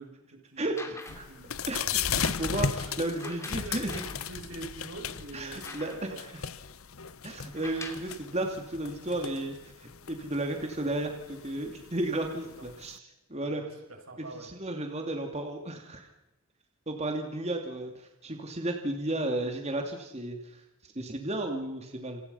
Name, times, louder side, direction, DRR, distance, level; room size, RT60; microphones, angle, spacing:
voice 1, 0.0-1.0 1.2-1.6 2.8-6.2 12.2-12.7 13.4-14.5, right 3 dB, 85° right, 3 dB, 6.9 m, -46 dB
sound 1, 0.6-1.4 2.1-4.2 4.8-4.9 5.2-6.3 7.4-8.1 9.1-9.2, left 2 dB, 15° left, 3.1 m, -45 dB
voice 2, 0.6-1.2 1.7-3.9 5.3-6.3 7.2-13.0 13.3-13.6 14.3-16.1 16.9-22.2, right 1 dB, 30° right, 4 dB, 2.7 m, -34 dB
sound 2, 1.1-13.0, left 7 dB, 85° left, 1.0 m, -36 dB
29.0 x 25.5 x 5.7 m, 0.99 s
head